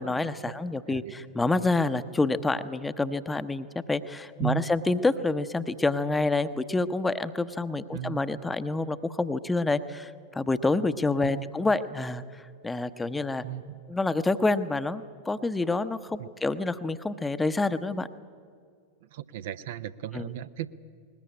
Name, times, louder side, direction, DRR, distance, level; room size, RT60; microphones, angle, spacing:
voice 1, 0.0-12.2 12.6-13.4 13.9-18.1 20.1-20.3, left 3 dB, 10° left, 12 dB, 0.8 m, -27 dB
voice 2, 7.9-8.3 11.2-11.5 13.4-13.8 16.2-16.3 19.1-20.7, right 13 dB, 55° right, 13 dB, 0.6 m, -35 dB
20.5 x 20.0 x 8.7 m, 2.2 s
figure-of-eight pair, 90°, 0 cm